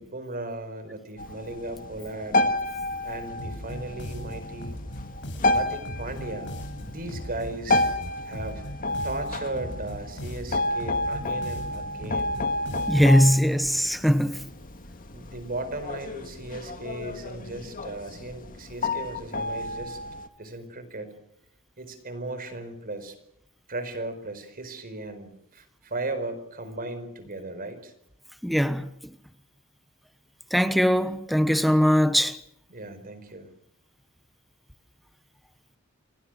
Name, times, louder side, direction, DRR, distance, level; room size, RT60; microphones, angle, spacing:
voice 1, 0.0-2.5 3.0-4.8 5.5-7.9 8.2-8.6 9.0-12.4 15.1-20.0 20.4-21.2 21.8-23.2 23.7-27.9 32.7-33.5, right 2 dB, 40° right, 4.8 m, -36 dB
sound 1, 1.2-20.3, left 2 dB, 40° left, 2.1 m, -31 dB
sound 2, 3.4-13.2, equal, 55° left, 7.4 m, -38 dB
voice 2, 12.9-14.4 28.4-28.9 30.5-32.4, equal, ahead, 1.1 m, -21 dB
29.0 x 23.0 x 6.5 m
head